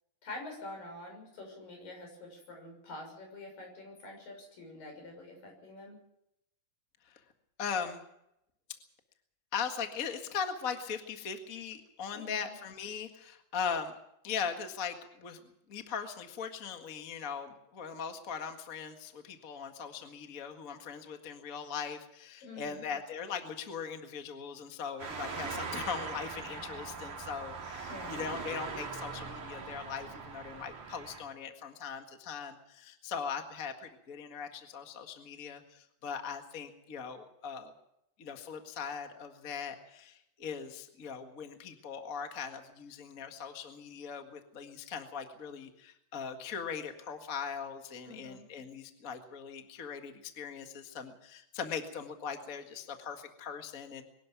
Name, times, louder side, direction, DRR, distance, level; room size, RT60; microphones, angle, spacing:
voice 1, 0.2-6.0 12.1-12.6 22.4-22.8 27.9-28.2 48.1-48.5, left 2 dB, 60° left, 3 dB, 8.2 m, -46 dB
voice 2, 7.6-8.0 9.5-13.9 14.2-15.4 15.7-37.7 38.2-54.0, left 6 dB, 45° left, 5 dB, 1.1 m, -40 dB
sound 1, 25.0-31.2, right 5 dB, 55° right, 4.0 m, -41 dB
23.5 x 12.0 x 9.2 m, 0.80 s
omnidirectional pair, 4.4 m